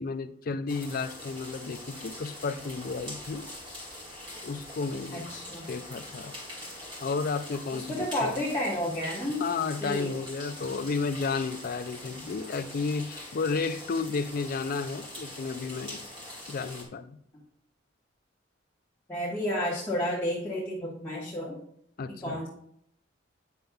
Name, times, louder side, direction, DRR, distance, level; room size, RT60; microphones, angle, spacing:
voice 1, 0.0-3.5 4.4-5.2 5.7-6.4 7.0-8.4 9.4-16.0 16.5-17.2 22.0-22.5, left 4 dB, 50° left, 11 dB, 0.4 m, -32 dB
sound 1, 0.7-16.8, left 1 dB, 25° right, 2.2 m, -43 dB
voice 2, 5.1-5.7 7.7-9.4 9.8-10.1 17.3-17.4 19.1-21.6 22.2-22.5, left 1 dB, 15° left, -7 dB, 1.5 m, -31 dB
9.3 x 6.5 x 2.3 m, 0.70 s
head